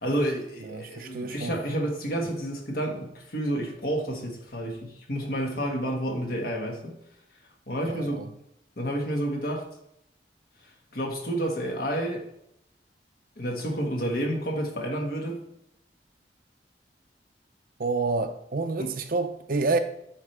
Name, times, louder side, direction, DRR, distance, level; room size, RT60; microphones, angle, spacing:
voice 1, 0.0-7.0 7.7-8.3 8.8-9.7 10.6-12.3 13.4-15.4 18.8-18.9, right 1 dB, 55° left, 1.6 m, -30 dB
voice 2, 0.7-1.5 7.9-8.3 17.8-19.8, right 3 dB, 55° right, 0.6 m, -28 dB
10.5 x 4.6 x 3.4 m
head